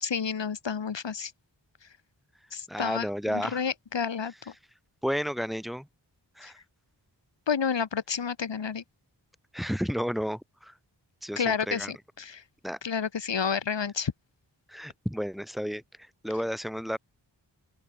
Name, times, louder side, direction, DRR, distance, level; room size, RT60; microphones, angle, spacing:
voice 1, 0.0-1.3 2.5-4.3 6.4-6.5 7.5-8.8 11.4-12.4 12.8-14.1, left 6 dB, 85° left, 1.8 m, -30 dB
voice 2, 2.7-3.6 5.0-5.9 6.4-6.6 9.5-10.7 11.2-11.9 12.6-12.8 14.7-15.8 16.2-17.0, equal, ahead, 2.9 m, -32 dB
open air
wide cardioid pair, 90°, 43 cm